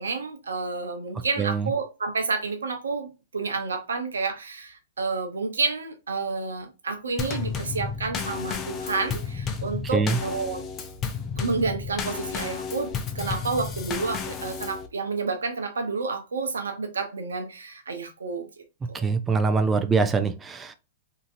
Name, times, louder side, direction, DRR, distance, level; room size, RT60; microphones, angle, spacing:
voice 1, 0.0-10.6 11.4-18.5 18.9-19.1, right 4 dB, 90° right, 0.7 m, -30 dB
voice 2, 1.4-1.7 9.9-10.2 18.9-20.8, right 4 dB, 15° right, 0.5 m, -23 dB
Drum kit / Snare drum / Bass drum, 7.2-14.9, left 6 dB, 30° left, 0.5 m, -32 dB
2.9 x 2.6 x 2.5 m
hypercardioid pair, 120°, 0 cm